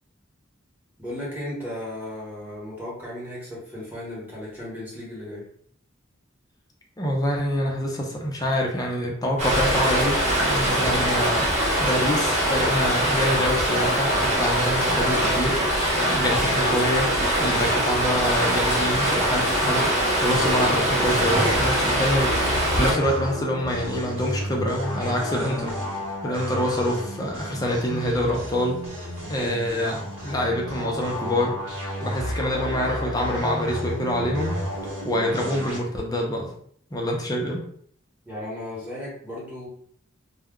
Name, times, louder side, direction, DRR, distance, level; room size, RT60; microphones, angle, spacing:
voice 1, 1.0-5.5 38.2-39.7, left 1 dB, 10° right, -6 dB, 1.0 m, -35 dB
voice 2, 7.0-11.5 11.8-15.6 16.1-17.1 17.4-19.9 20.2-25.7 26.2-28.8 29.3-31.6 32.0-34.5 35.0-36.5 36.9-37.6, equal, 20° left, 0 dB, 0.5 m, -26 dB
Stream, 9.4-22.9, equal, 35° right, 0.9 m, -22 dB
sound 1, 20.5-35.8, equal, 70° right, 1.0 m, -32 dB
2.2 x 2.1 x 3.6 m, 0.62 s
head